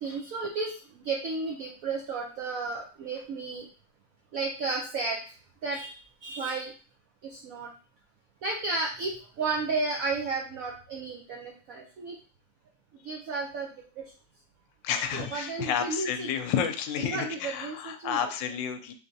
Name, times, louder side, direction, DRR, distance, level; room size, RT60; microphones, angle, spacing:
voice 1, 0.0-3.7 4.3-5.2 5.6-5.9 6.2-6.7 7.2-7.7 8.4-12.2 13.0-14.1 15.1-16.3 17.0-18.3, right 3 dB, 70° right, 0 dB, 0.8 m, -33 dB
voice 2, 14.8-18.9, left 8 dB, 80° left, 8 dB, 1.2 m, -31 dB
4.3 x 3.3 x 2.6 m, 0.37 s
omnidirectional pair, 2.1 m